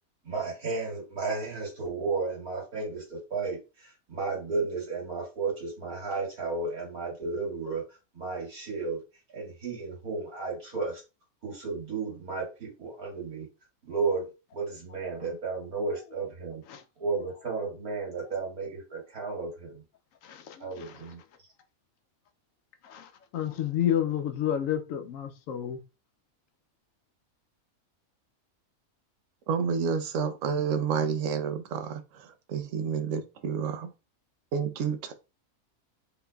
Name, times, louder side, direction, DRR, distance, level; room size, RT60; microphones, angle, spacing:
voice 1, 0.2-9.0 9.3-11.0 11.4-13.5 13.8-16.6 17.0-19.8 20.6-21.2, right 4 dB, 85° right, 2.3 m, -33 dB
voice 2, 20.2-21.0 22.8-25.8, left 10 dB, 70° left, 0.9 m, -30 dB
voice 3, 29.5-33.9 34.5-35.1, right 6 dB, 65° right, 0.9 m, -30 dB
3.9 x 3.8 x 2.2 m
omnidirectional pair, 1.5 m